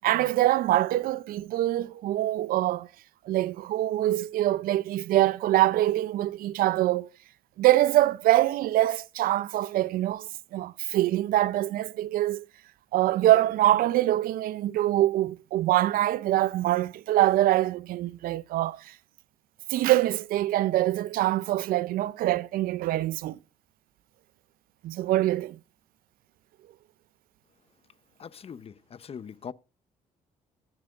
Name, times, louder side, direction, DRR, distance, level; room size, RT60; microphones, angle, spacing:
voice 1, 0.0-2.9 3.3-7.1 7.6-12.4 12.9-18.9 19.7-23.4 24.8-25.6, right 15 dB, 75° right, 0.5 m, -24 dB
voice 2, 28.2-29.5, left 7 dB, 40° left, 0.7 m, -41 dB
19.0 x 7.3 x 2.4 m
supercardioid pair, 75°, 15 cm